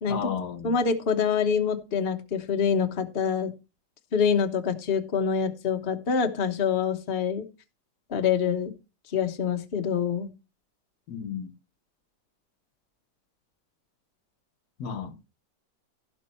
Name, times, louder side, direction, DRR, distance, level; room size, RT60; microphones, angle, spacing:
voice 1, 0.1-0.7 11.1-11.5 14.8-15.3, left 7 dB, 65° left, 1.5 m, -33 dB
voice 2, 0.6-3.5 4.1-7.4 8.1-8.7 9.1-10.3, left 6 dB, 40° left, 1.1 m, -26 dB
16.0 x 5.3 x 4.3 m
omnidirectional pair, 2.0 m